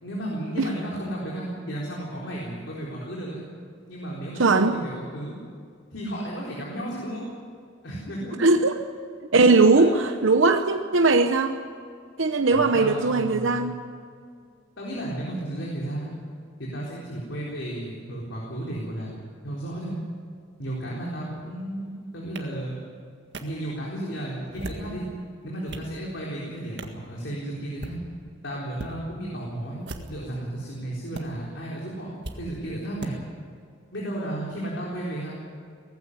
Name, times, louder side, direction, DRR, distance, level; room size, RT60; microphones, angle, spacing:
voice 1, 0.0-3.4 3.9-5.4 5.9-7.3 7.8-8.5 9.8-9.9 12.5-13.7 14.8-16.1 16.6-20.0 20.6-22.8 23.4-25.0 25.4-28.0 28.4-29.8 30.1-33.1 33.9-35.4, right 1 dB, 65° left, -4 dB, 4.1 m, -33 dB
voice 2, 4.4-4.8 8.4-8.7 9.3-9.9 10.2-11.6 12.2-13.8, right 3 dB, 75° right, 7 dB, 0.9 m, -19 dB
sound 1, 22.3-22.4 23.3-23.4 24.4-24.9 25.4-25.9 26.8-27.0 27.6-28.0 28.7-28.9 29.8-30.3 31.1-31.2 32.2-32.4 33.0-33.1, right 1 dB, 55° right, 1.8 m, -38 dB
18.5 x 15.5 x 9.8 m, 2.2 s
head